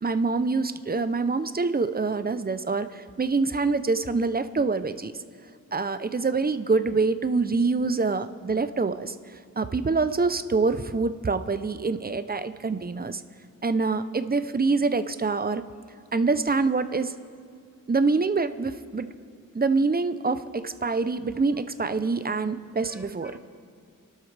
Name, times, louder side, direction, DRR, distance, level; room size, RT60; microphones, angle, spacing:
voice 1, 0.0-2.9 3.2-5.1 5.7-9.1 9.6-13.2 13.6-15.6 16.1-17.1 17.9-19.1 19.5-23.3, right 4 dB, 30° right, 11 dB, 0.6 m, -25 dB
voice 2, 21.9-22.4 22.7-23.4, equal, 5° right, 3 dB, 1.3 m, -50 dB
27.5 x 12.0 x 3.3 m, 2.3 s
wide cardioid pair, 75°, 33 cm